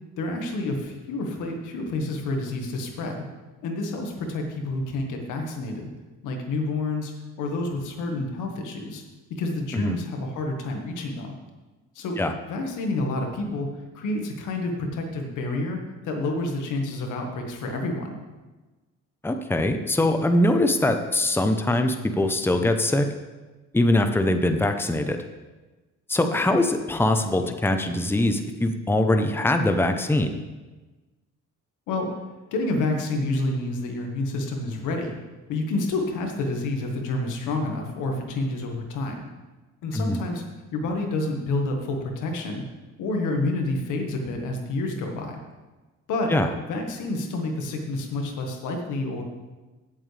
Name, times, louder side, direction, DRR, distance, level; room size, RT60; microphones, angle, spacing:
voice 1, 0.2-3.2 3.6-5.9 6.2-7.1 7.4-9.0 9.4-11.3 12.0-12.2 12.5-13.7 13.9-18.2 31.9-32.1 32.5-35.1 35.5-39.2 39.8-40.4 40.7-42.6 43.0-45.4 46.1-46.3 46.7-49.2, left 2 dB, 90° left, 3 dB, 1.7 m, -28 dB
voice 2, 19.2-23.1 23.7-25.2 26.1-30.3 39.9-40.2 46.3-46.5, left 1 dB, 5° left, 6 dB, 0.8 m, -22 dB
16.5 x 7.5 x 3.4 m, 1.2 s
cardioid pair, 90°, 30 cm